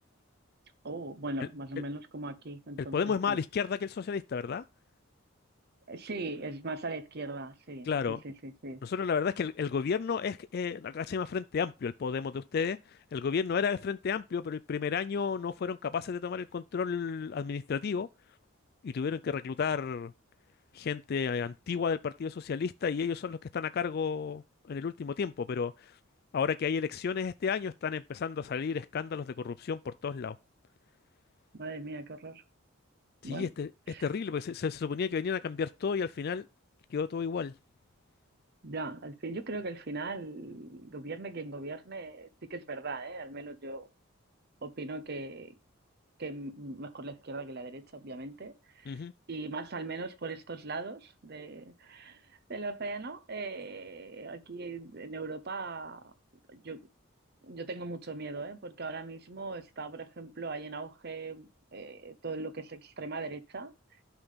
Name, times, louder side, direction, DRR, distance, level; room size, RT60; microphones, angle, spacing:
voice 1, 0.8-3.4 5.9-8.8 31.5-32.4 33.2-33.5 33.9-34.1 38.6-43.9 44.6-45.6 46.2-49.0 49.3-56.1 56.5-56.9 57.4-63.7, right 3 dB, 50° right, 0.9 m, -40 dB
voice 2, 2.9-4.6 7.9-8.2 8.8-18.1 18.8-20.1 20.7-26.0 26.3-30.4 33.2-33.7 34.0-36.5 36.9-37.5 48.9-49.1, left 6 dB, 50° left, 0.3 m, -32 dB
9.8 x 5.8 x 3.6 m
head